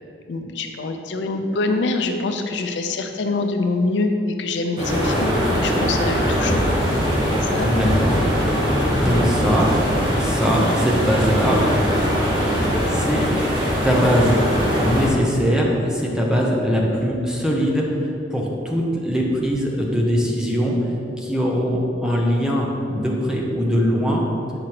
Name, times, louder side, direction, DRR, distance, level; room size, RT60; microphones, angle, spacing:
voice 1, 0.3-4.1 4.4-5.3 5.5-6.8 7.4-7.7, left 3 dB, 85° left, 5 dB, 0.5 m, -25 dB
sound 1, 4.8-15.1, equal, 25° right, 1.5 m, -21 dB
voice 2, 7.6-8.2 9.0-9.7 10.2-11.6 12.9-13.3 13.8-14.4 14.8-17.9 18.3-20.7 21.2-24.2, equal, 5° right, -2 dB, 0.7 m, -21 dB
7.8 x 4.9 x 2.9 m, 2.6 s
head